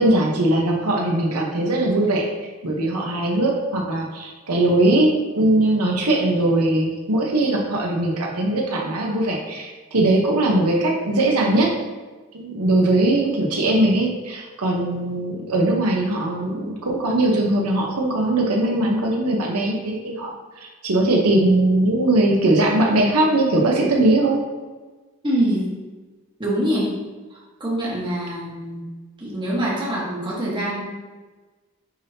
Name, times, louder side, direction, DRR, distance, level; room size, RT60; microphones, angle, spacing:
voice 1, 0.0-2.3 2.6-11.7 12.3-20.3 20.8-24.4, right 1 dB, 90° right, -1 dB, 1.0 m, -20 dB
voice 2, 25.2-25.7 26.4-27.0 27.3-28.8 29.2-30.8, right 1 dB, 20° right, -5 dB, 1.3 m, -24 dB
9.6 x 3.5 x 2.8 m, 1.3 s
head